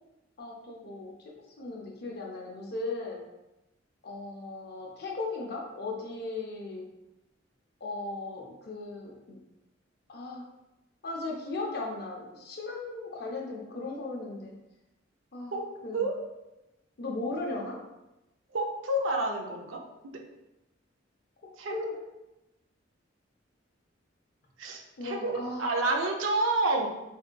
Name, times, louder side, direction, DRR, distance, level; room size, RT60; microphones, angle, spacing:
voice 1, 0.4-3.2 4.0-6.8 7.8-9.4 10.1-10.4 11.0-14.5 15.3-15.5 15.8-16.1 17.0-17.8 21.7-22.0 25.0-25.7, left 3 dB, 55° left, -1 dB, 0.6 m, -37 dB
voice 2, 18.5-20.2 21.6-21.9 24.6-26.9, right 2 dB, 85° right, 2 dB, 0.5 m, -29 dB
3.4 x 2.7 x 2.2 m, 0.95 s
head